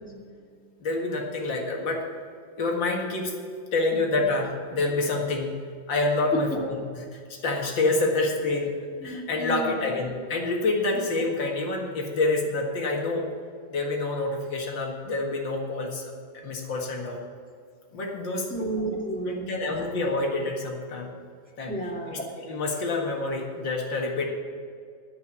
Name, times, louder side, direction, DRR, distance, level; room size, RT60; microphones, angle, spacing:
voice 1, 0.1-0.5 0.8-2.0 2.6-3.3 3.7-5.5 5.9-13.3 13.7-17.2 17.9-18.5 19.3-21.1 21.6-21.7 22.1-24.3, left 2 dB, 65° left, 0 dB, 2.5 m, -27 dB
voice 2, 9.0-9.9 18.5-19.6 21.7-22.2, right 1 dB, 5° left, -2 dB, 2.0 m, -31 dB
10.5 x 8.1 x 8.5 m, 2.1 s
omnidirectional pair, 2.2 m